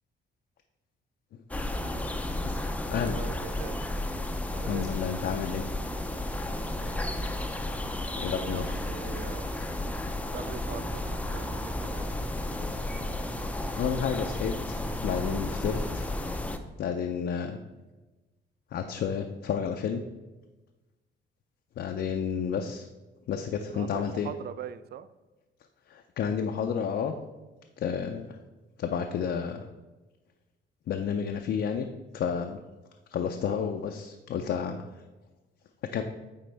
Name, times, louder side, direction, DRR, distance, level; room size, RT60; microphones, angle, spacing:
sound 1, 1.5-16.6, left 1 dB, 5° left, 0.5 m, -33 dB
voice 1, 3.0-3.7 4.5-4.8 6.5-7.0 8.3-9.5 10.1-12.1 23.7-25.1, right 9 dB, 55° right, 14 dB, 0.4 m, -42 dB
voice 2, 4.6-5.6 8.2-8.8 13.8-14.8 15.0-16.1 16.8-17.6 18.7-20.0 21.8-22.9 23.3-24.3 25.9-27.2 27.8-28.4 28.8-29.7 30.9-31.9 32.1-32.6 33.1-34.8 35.9-36.0, left 7 dB, 60° left, 4 dB, 0.5 m, -31 dB
9.3 x 3.6 x 3.3 m, 1.1 s
cardioid pair, 90°, 20 cm